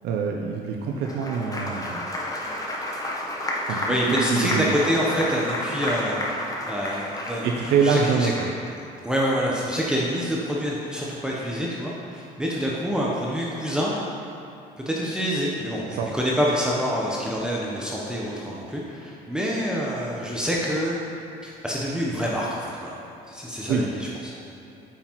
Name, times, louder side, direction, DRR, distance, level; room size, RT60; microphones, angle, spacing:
voice 1, 0.0-2.0 3.7-4.8 7.4-8.5 15.9-16.1 23.7-23.9, right 5 dB, 80° right, 1 dB, 0.6 m, -25 dB
Applause, 0.9-8.7, left 1 dB, 20° left, 1.0 m, -31 dB
voice 2, 3.9-8.3 9.0-13.9 14.9-21.0 21.4-23.0 23.3-24.3, equal, 5° right, -5 dB, 0.8 m, -27 dB
8.4 x 5.7 x 3.0 m, 2.9 s
cardioid pair, 110°, 17 cm